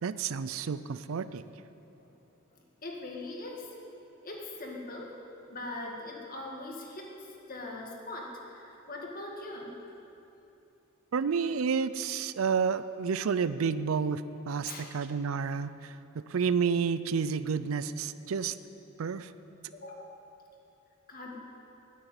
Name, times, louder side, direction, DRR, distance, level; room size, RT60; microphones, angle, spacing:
voice 1, 0.0-1.5 11.1-18.6 19.0-19.3, right 6 dB, 80° right, 14 dB, 0.4 m, -30 dB
voice 2, 2.5-3.7 4.2-5.2 5.5-9.7 14.7-14.9 19.7-20.2 21.1-21.4, left 2 dB, 45° left, -1 dB, 2.0 m, -41 dB
9.9 x 9.6 x 9.0 m, 2.9 s
head